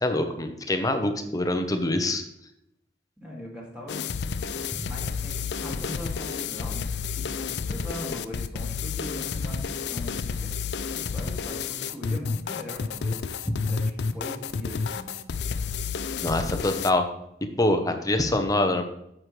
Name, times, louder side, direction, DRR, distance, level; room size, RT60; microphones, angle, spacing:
voice 1, 0.0-2.2 4.7-4.8 16.2-17.1 17.4-18.8, left 1 dB, 20° left, 6 dB, 0.8 m, -25 dB
voice 2, 3.2-4.3 4.8-6.8 7.1-13.2 13.6-13.8 14.1-15.1, left 1 dB, 5° right, -4 dB, 2.4 m, -40 dB
sound 1, 3.9-16.9, left 5 dB, 70° left, 0.4 m, -30 dB
9.6 x 7.4 x 3.2 m, 0.79 s
head